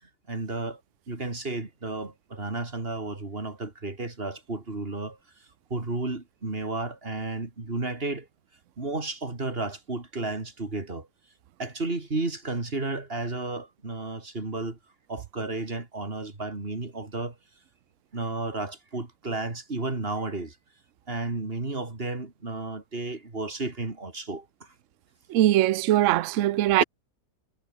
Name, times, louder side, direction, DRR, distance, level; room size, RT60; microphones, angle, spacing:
voice 1, 0.3-0.8 1.1-5.2 5.7-8.3 8.8-11.1 11.6-14.8 15.1-17.3 18.1-20.6 21.1-24.7, right 2 dB, 30° right, 3.4 m, -32 dB
voice 2, 25.3-26.8, right 14 dB, 65° right, 0.8 m, -21 dB
omnidirectional pair, 1.9 m